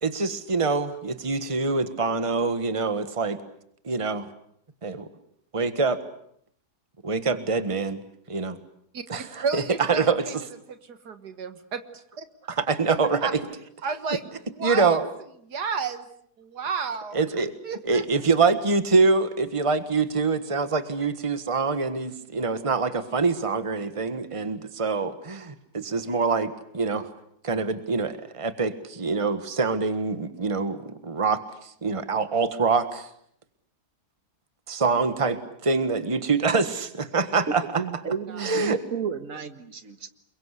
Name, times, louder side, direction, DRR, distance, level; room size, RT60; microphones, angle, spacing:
voice 1, 0.0-3.4 3.8-4.3 4.8-5.1 5.5-6.0 7.0-8.0 8.3-8.6 9.1-9.6 9.9-10.3 12.5-13.3 14.6-15.1 17.1-17.5 17.8-27.1 27.4-33.1 34.7-37.8 38.4-38.8, right 4 dB, 20° right, 11 dB, 1.6 m, -25 dB
voice 2, 9.4-10.4 10.7-12.3 13.2-13.3 13.8-14.2 14.5-15.0 15.5-16.1 16.4-17.3 17.6-18.0 38.3-38.6, right 5 dB, 80° right, 10 dB, 2.1 m, -32 dB
voice 3, 37.8-40.1, right 7 dB, 55° right, 10 dB, 2.0 m, -32 dB
29.0 x 23.0 x 8.3 m, 0.69 s
omnidirectional pair, 1.7 m